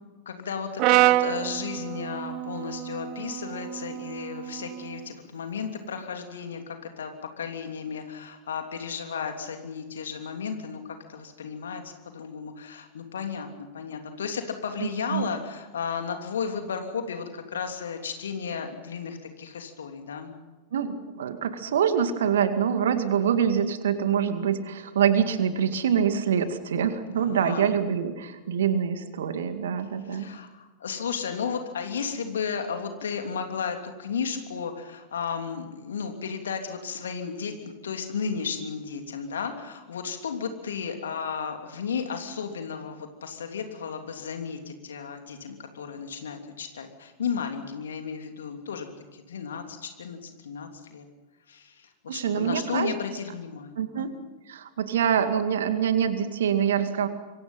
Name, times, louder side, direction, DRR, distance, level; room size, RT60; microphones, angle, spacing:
voice 1, 0.2-10.8 11.1-20.3 27.1-27.7 30.0-51.1 51.5-54.1, left 6 dB, 65° left, 5 dB, 3.1 m, -34 dB
Brass instrument, 0.8-5.0, right 15 dB, 40° right, 0.7 m, -27 dB
voice 2, 20.7-30.3 52.1-52.9 53.8-54.1 54.5-57.1, right 8 dB, 60° right, 10 dB, 2.1 m, -25 dB
26.5 x 23.5 x 5.6 m, 1.2 s
figure-of-eight pair, 90°, 0 cm